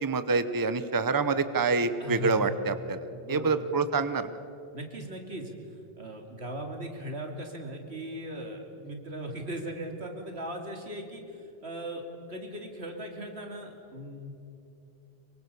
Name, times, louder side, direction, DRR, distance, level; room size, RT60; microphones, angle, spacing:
voice 1, 0.0-3.0 3.3-4.3, right 4 dB, 20° right, 11 dB, 0.8 m, -26 dB
voice 2, 2.0-2.6 3.1-3.7 4.7-5.6 6.0-14.3, equal, 85° right, 3 dB, 3.1 m, -38 dB
25.0 x 23.5 x 6.9 m, 2.7 s
omnidirectional pair, 1.1 m